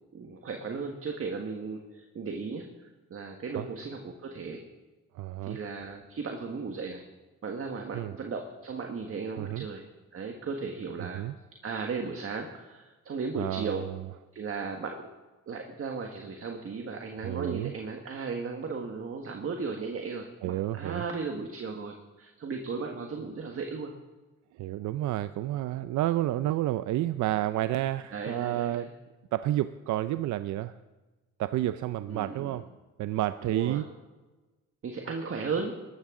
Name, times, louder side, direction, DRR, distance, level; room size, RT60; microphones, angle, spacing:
voice 1, 0.1-2.7 3.1-4.6 5.4-7.0 7.4-9.9 10.1-11.2 11.6-13.9 14.3-15.1 15.5-23.9 28.1-28.9 32.1-32.6 33.5-33.8 34.8-35.7, right 4 dB, 50° right, 3 dB, 1.6 m, -36 dB
voice 2, 5.1-5.6 7.9-8.1 9.4-9.7 11.0-11.3 13.4-14.0 17.2-17.7 20.4-21.0 24.6-28.9 29.3-30.8 31.4-32.7 33.0-33.9, right 14 dB, 75° right, 12 dB, 0.5 m, -30 dB
19.5 x 13.0 x 3.8 m, 1.2 s
cardioid pair, 90°, 30 cm